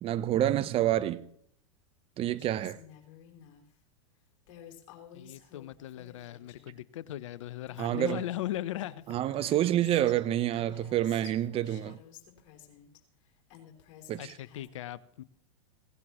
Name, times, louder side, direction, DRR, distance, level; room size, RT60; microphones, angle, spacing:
voice 1, 0.0-1.2 2.2-2.8 7.8-8.2 9.1-12.0 14.1-14.4, right 12 dB, 35° right, 0.9 m, -28 dB
Female speech woman speaking, 2.4-3.6 4.5-6.8 7.4-7.5 7.7-10.2 10.5-13.0 13.5-14.7, left 9 dB, 55° left, 3.3 m, -53 dB
voice 2, 5.1-9.5 14.2-15.2, left 13 dB, 70° left, 0.7 m, -38 dB
17.5 x 16.5 x 3.1 m
hypercardioid pair, 100°, 16 cm